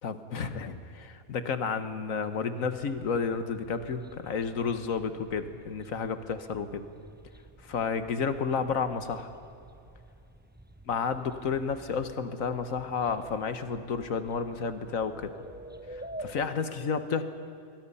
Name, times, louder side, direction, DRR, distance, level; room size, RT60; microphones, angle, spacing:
voice 1, 0.0-6.8 7.6-9.3 10.9-15.3 15.9-17.2, left 5 dB, 75° left, 10 dB, 1.6 m, -31 dB
sound 1, 2.7-16.5, right 1 dB, 15° right, 0.4 m, -49 dB
26.0 x 23.0 x 5.6 m, 2.6 s
omnidirectional pair, 1.4 m